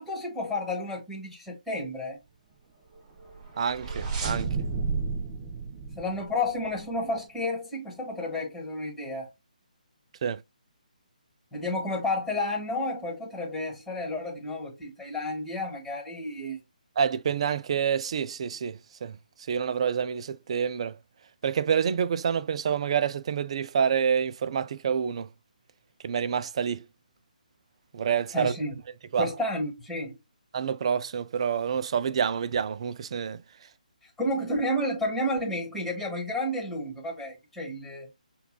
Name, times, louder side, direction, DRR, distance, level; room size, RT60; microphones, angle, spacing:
voice 1, 0.0-2.2 6.0-9.3 11.5-16.6 28.3-28.7 29.2-30.1 34.2-38.1, left 1 dB, 5° left, 1.4 m, -31 dB
sound 1, 3.2-6.9, right 4 dB, 20° right, 0.7 m, -32 dB
voice 2, 3.6-4.5 10.2-10.4 17.0-19.1 19.5-21.0 21.4-25.3 26.0-26.8 27.9-28.5 29.1-29.3 30.5-33.4, right 7 dB, 45° right, 0.4 m, -27 dB
6.8 x 2.3 x 2.2 m
figure-of-eight pair, 145°, 4 cm